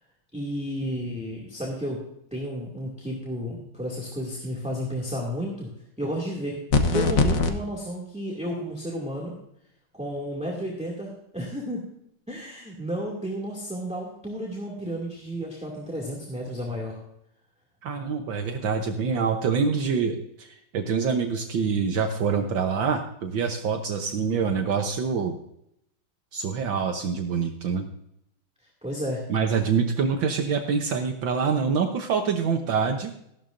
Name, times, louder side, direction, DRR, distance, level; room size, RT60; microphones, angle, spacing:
voice 1, 0.3-2.0 2.3-5.7 6.0-6.6 6.9-9.4 9.9-11.8 12.3-17.0 28.8-29.2, equal, 5° right, -3 dB, 2.2 m, -32 dB
sound 1, 6.7-7.5, left 4 dB, 50° left, 1.3 m, -21 dB
voice 2, 17.8-25.4 26.3-27.8 29.3-33.1, right 5 dB, 70° right, 5 dB, 1.6 m, -25 dB
15.5 x 12.0 x 2.6 m, 0.75 s
omnidirectional pair, 2.3 m